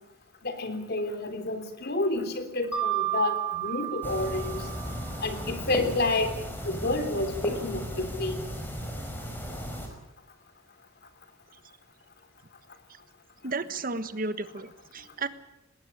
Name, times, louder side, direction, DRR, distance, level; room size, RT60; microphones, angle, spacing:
voice 1, 0.4-4.7 5.2-6.3 6.6-8.5, left 2 dB, 55° left, 8 dB, 3.4 m, -29 dB
Mallet percussion, 2.7-5.5, right 13 dB, 5° right, 3.9 m, -32 dB
sound 1, 4.0-9.9, equal, 10° left, 4.9 m, -36 dB
voice 2, 13.4-15.3, right 3 dB, 45° right, 13 dB, 1.4 m, -33 dB
19.5 x 19.0 x 8.7 m, 0.88 s
head